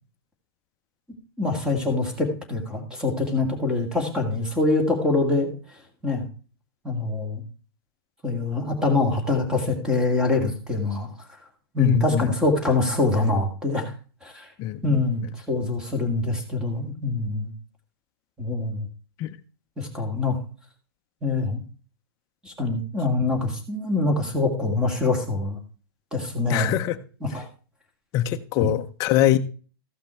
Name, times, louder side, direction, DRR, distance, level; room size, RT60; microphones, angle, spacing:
voice 1, 1.4-5.5 6.0-6.3 6.8-7.4 8.2-11.1 11.7-13.9 14.2-14.5 14.8-17.5 18.4-18.9 19.8-20.4 21.2-21.6 22.4-25.6 26.1-26.7 27.2-27.5 28.6-28.7, left 3 dB, 5° right, 4 dB, 2.1 m, -24 dB
voice 2, 11.8-12.3 14.6-15.3 19.2-19.4 26.5-27.0 28.1-29.4, left 12 dB, 25° left, 10 dB, 0.7 m, -23 dB
14.5 x 5.8 x 4.4 m, 0.38 s
hypercardioid pair, 160°, 13 cm